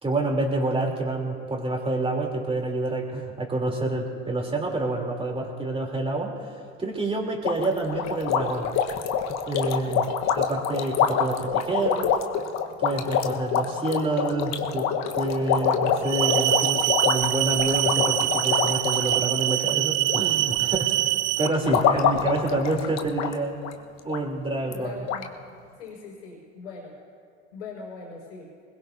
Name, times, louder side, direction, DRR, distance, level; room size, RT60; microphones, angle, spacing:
voice 1, 0.0-8.7 9.5-10.1 10.3-12.1 12.8-14.9 15.1-21.1 21.4-23.6 24.0-25.0, right 2 dB, 15° right, 0 dB, 3.2 m, -28 dB
sound 1, 7.4-20.2 20.5-20.9 21.4-23.3 23.6-23.7 24.1-24.2 24.7-24.8 25.1-25.2, left 7 dB, 50° left, 1.3 m, -26 dB
sound 2, 16.0-21.5, right 16 dB, 70° right, 0.7 m, -24 dB
voice 2, 24.7-25.3 25.8-26.9 27.5-28.5, left 4 dB, 90° left, -4 dB, 5.1 m, -40 dB
22.0 x 20.5 x 2.7 m, 2.1 s
hypercardioid pair, 90°, 35 cm